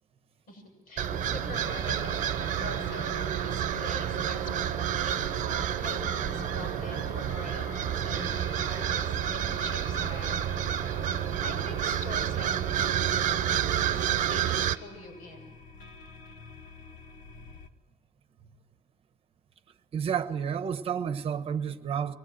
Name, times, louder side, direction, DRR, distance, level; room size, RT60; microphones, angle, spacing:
voice 1, 0.5-2.3 2.6-10.7 11.4-15.5, left 2 dB, 90° left, 7.7 m, -44 dB
sound 1, 1.0-14.8, right 11 dB, 65° right, 0.9 m, -29 dB
sound 2, 1.1-14.2, left 8 dB, 55° left, 0.7 m, -44 dB
sound 3, 1.5-17.7, left 4 dB, 75° left, 1.7 m, -51 dB
voice 2, 19.9-22.1, right 7 dB, 40° right, 1.2 m, -30 dB
24.5 x 19.5 x 7.8 m
cardioid pair, 170°, 14 cm